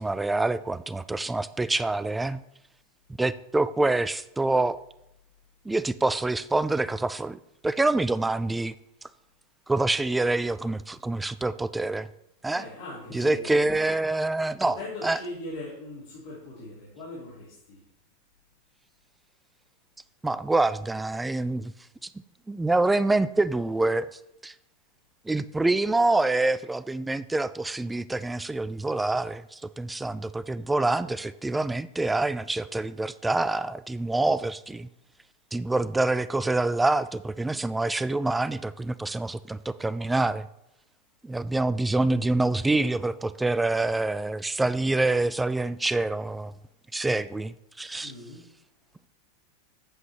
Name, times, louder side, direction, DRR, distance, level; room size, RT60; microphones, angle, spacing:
voice 1, 0.0-2.4 3.2-4.8 5.7-8.7 9.7-12.1 12.4-12.6 13.1-14.8 15.0-15.2 20.2-21.7 22.5-24.5 25.3-34.9 35.5-40.5 41.2-46.5 46.9-48.1, right 2 dB, 10° right, 15 dB, 0.3 m, -26 dB
voice 2, 12.5-14.0 14.6-17.8 48.0-48.4, left 2 dB, 65° left, -7 dB, 3.0 m, -40 dB
8.1 x 7.7 x 2.9 m, 0.85 s
hypercardioid pair, 95°, 0 cm